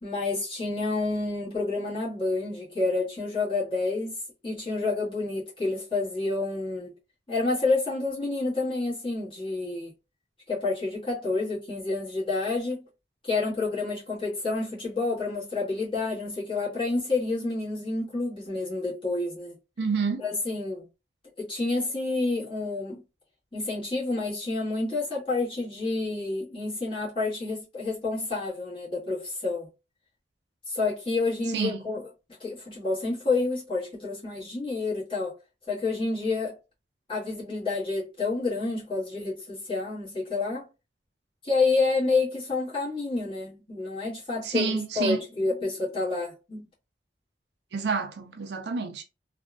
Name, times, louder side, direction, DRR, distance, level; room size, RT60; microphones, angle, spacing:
voice 1, 0.0-4.1 4.4-6.9 7.3-9.9 10.5-12.8 13.2-19.6 20.2-20.8 21.4-23.0 23.5-29.7 30.7-32.1 32.4-35.3 35.7-36.5 37.1-40.6 41.4-46.7, left 3 dB, 30° left, 1.7 m, -29 dB
voice 2, 19.8-20.2 31.5-31.8 44.4-45.2 47.7-49.0, right 5 dB, 70° right, 0.5 m, -28 dB
3.4 x 2.4 x 2.2 m
head